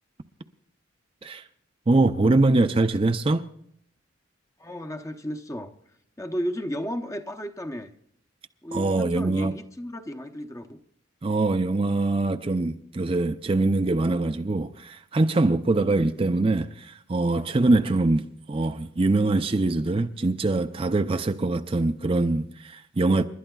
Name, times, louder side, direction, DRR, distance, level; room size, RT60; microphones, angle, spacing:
voice 1, 1.9-3.4 8.7-9.5 11.2-23.2, right 2 dB, 25° right, 0.5 m, -23 dB
voice 2, 4.6-5.7 6.2-7.9 8.6-10.8, equal, 15° left, 0.7 m, -33 dB
29.5 x 12.0 x 2.3 m
head